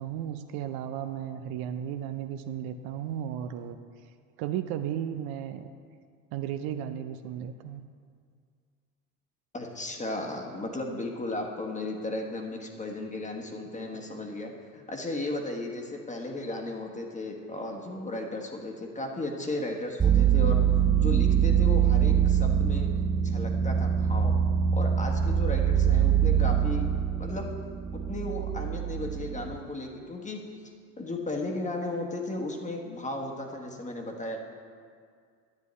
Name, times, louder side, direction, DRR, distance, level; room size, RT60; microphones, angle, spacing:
voice 1, 0.0-3.8 4.4-5.7 6.3-7.8, right 10 dB, 55° right, 8 dB, 0.6 m, -34 dB
voice 2, 9.5-20.7 20.9-22.9 23.2-24.3 24.7-26.9 27.2-27.5 27.9-30.4 31.0-34.4, left 2 dB, 15° left, 2 dB, 1.3 m, -35 dB
sound 1, 20.0-29.6, right 8 dB, 10° right, 0.4 m, -24 dB
10.5 x 9.1 x 3.2 m, 2.1 s
hypercardioid pair, 85°, 45 cm